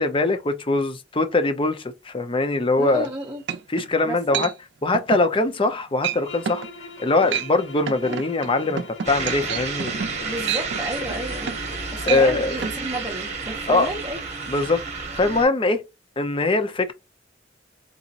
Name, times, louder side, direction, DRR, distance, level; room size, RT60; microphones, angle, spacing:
voice 1, 0.0-3.1 3.7-4.5 4.8-6.6 7.0-10.0 12.0-12.5 13.7-13.9 14.5-14.8 15.1-15.8 16.2-16.9, left 2 dB, 30° left, 0.6 m, -22 dB
voice 2, 2.8-3.4 4.0-4.4 10.2-11.5 11.9-14.2, right 1 dB, 20° right, 0.7 m, -31 dB
sound 1, 3.0-3.1 3.5-3.9 4.3-4.5 4.9-5.3 5.6-5.8 6.0-6.2 6.5-6.7 7.1-7.5 7.9-11.8 12.0-12.3 12.6-12.8, right 8 dB, 70° right, 0.5 m, -29 dB
sound 2, 6.2-12.6, left 3 dB, 70° left, 1.9 m, -41 dB
sound 3, 9.0-15.4, right 4 dB, 40° right, 1.0 m, -31 dB
4.0 x 2.9 x 2.5 m
head